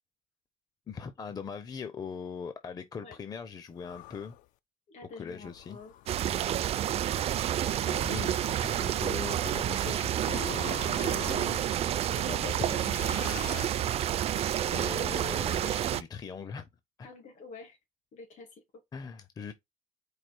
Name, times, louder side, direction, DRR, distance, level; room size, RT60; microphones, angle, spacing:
voice 1, 0.9-4.4 5.2-5.8 7.9-11.6 11.9-12.9 14.7-16.7 17.0-17.1 18.9-19.5, left 6 dB, 30° left, 0.5 m, -40 dB
sound 1, 3.8-4.4 5.4-6.6 7.6-8.9 10.2-11.7 12.8-14.2, left 13 dB, 85° left, 0.4 m, -46 dB
voice 2, 4.9-5.9 12.5-12.9 13.3-13.7 17.0-17.8 18.1-18.8, left 3 dB, 70° left, 2.3 m, -48 dB
sound 2, 6.1-16.0, right 11 dB, 50° right, 0.4 m, -29 dB
4.7 x 2.4 x 4.3 m
cardioid pair, 130°, 13 cm